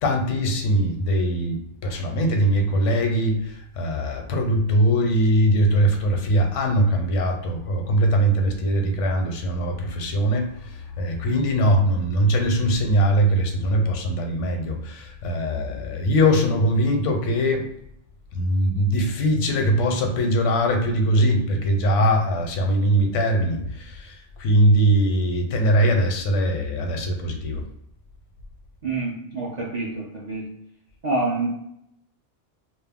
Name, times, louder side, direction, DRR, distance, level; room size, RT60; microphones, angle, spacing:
voice 1, 0.0-17.7 18.3-27.6, equal, 80° left, 3 dB, 0.9 m, -21 dB
voice 2, 28.8-30.5 31.0-31.5, right 2 dB, 60° right, -4 dB, 0.4 m, -27 dB
2.3 x 2.0 x 3.4 m, 0.74 s
omnidirectional pair, 1.2 m